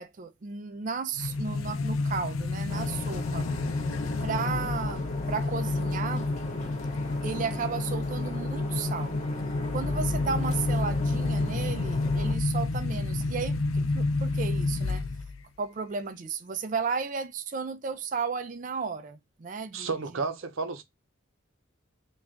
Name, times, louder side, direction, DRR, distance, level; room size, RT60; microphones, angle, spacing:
voice 1, 0.0-3.5 4.2-6.3 7.2-9.1 9.7-15.0 15.6-19.9, right 5 dB, 40° right, 0.4 m, -34 dB
sound 1, 1.2-15.4, left 3 dB, 85° left, 0.5 m, -29 dB
sound 2, 2.7-12.4, left 1 dB, 35° left, 0.6 m, -38 dB
voice 2, 19.7-20.8, right 4 dB, 80° right, 0.6 m, -32 dB
3.3 x 2.4 x 3.7 m
head